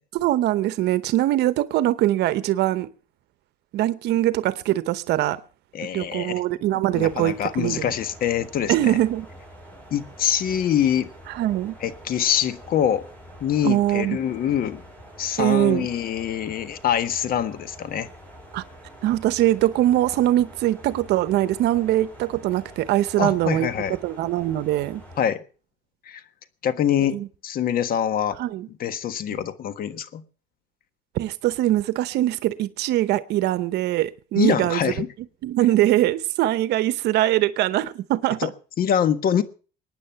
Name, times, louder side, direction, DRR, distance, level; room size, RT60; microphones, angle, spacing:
voice 1, 0.1-2.9 3.7-5.4 5.9-7.9 8.7-9.3 11.3-11.7 13.6-14.2 15.4-15.9 18.5-18.6 19.0-23.7 24.0-25.0 27.1-27.3 28.4-28.7 31.1-34.9 35.4-38.5, right 14 dB, 80° right, 0.9 m, -22 dB
voice 2, 5.7-6.4 6.9-9.0 9.9-11.1 11.8-13.0 13.4-14.8 15.2-18.1 23.2-24.0 25.2-25.4 26.1-26.2 26.6-27.2 27.4-28.4 28.8-30.2 34.3-35.1 38.4-38.5 38.8-39.4, left 9 dB, 60° left, 1.5 m, -24 dB
sound 1, 6.9-25.3, equal, 10° left, 7.5 m, -46 dB
22.5 x 9.7 x 5.8 m
cardioid pair, 110°, 17 cm